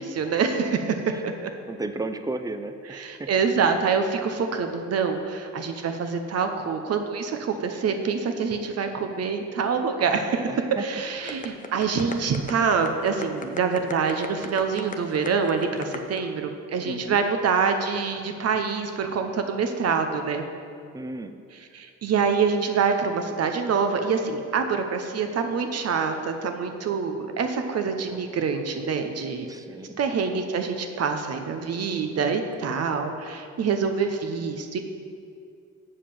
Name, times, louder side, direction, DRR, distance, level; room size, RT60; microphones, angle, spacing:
voice 1, 0.0-1.5 2.9-10.5 10.8-20.4 21.7-29.5 30.0-34.8, right 5 dB, 55° right, 6 dB, 0.9 m, -26 dB
voice 2, 1.7-3.3 10.5-10.8 16.8-17.2 20.9-21.3 29.5-30.0, right 2 dB, 10° right, 9 dB, 0.5 m, -34 dB
sound 1, 11.3-16.2, left 4 dB, 25° left, 0.7 m, -36 dB
7.6 x 4.9 x 7.1 m, 2.4 s
cardioid pair, 90°, 30 cm